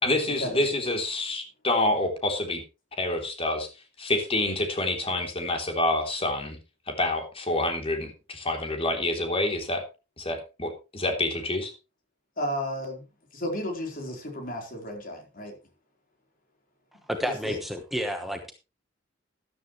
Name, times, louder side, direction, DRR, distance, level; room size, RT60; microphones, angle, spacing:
voice 1, 0.0-2.6 3.0-3.7 4.0-6.6 6.9-9.9 10.2-11.7, left 2 dB, 30° left, 3.3 m, -27 dB
voice 2, 12.4-13.0 13.3-15.6 17.2-17.6, equal, 50° left, 4.2 m, -33 dB
voice 3, 17.1-18.5, equal, ahead, 1.1 m, -30 dB
13.0 x 12.5 x 3.2 m
head